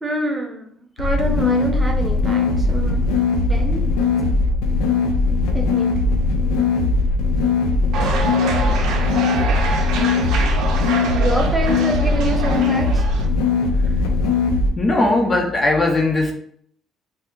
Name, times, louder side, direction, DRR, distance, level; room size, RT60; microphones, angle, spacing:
voice 1, 0.0-3.1 3.5-3.8 5.5-6.1 11.1-13.0, right 2 dB, 15° right, 1 dB, 0.8 m, -26 dB
sound 1, 1.0-14.7, left 3 dB, 90° left, 0.4 m, -19 dB
sound 2, 7.9-13.3, right 4 dB, 75° right, 0.5 m, -26 dB
voice 2, 14.8-16.3, left 2 dB, 30° left, 1 dB, 0.6 m, -18 dB
2.7 x 2.3 x 3.5 m, 0.64 s
supercardioid pair, 80°, 0 cm